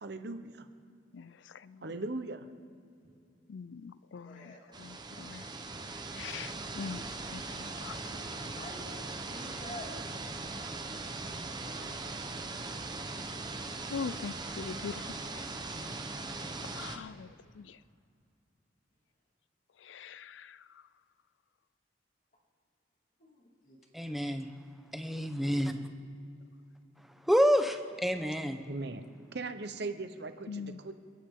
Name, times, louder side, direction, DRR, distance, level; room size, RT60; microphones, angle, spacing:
voice 1, 0.0-0.5 1.8-2.4 28.7-29.0 29.3-30.9, right 3 dB, 65° right, 8 dB, 1.0 m, -38 dB
voice 2, 3.5-4.5 4.8-5.4 6.2-7.0 7.3-7.4 7.8-8.0 13.9-15.4 16.7-17.3 17.6-17.7 19.9-20.6 30.5-30.8, left 5 dB, 80° left, 17 dB, 0.4 m, -41 dB
voice 3, 4.2-4.7 7.9-9.9 11.7-12.0 23.2-23.8 25.4-25.7, left 1 dB, 45° left, -2 dB, 2.6 m, -49 dB
sound 1, 4.7-17.0, right 3 dB, 25° right, 1.0 m, -40 dB
voice 4, 23.9-24.5 24.9-25.8 27.3-28.6, equal, ahead, 7 dB, 0.8 m, -28 dB
28.0 x 10.0 x 3.8 m, 2.5 s
head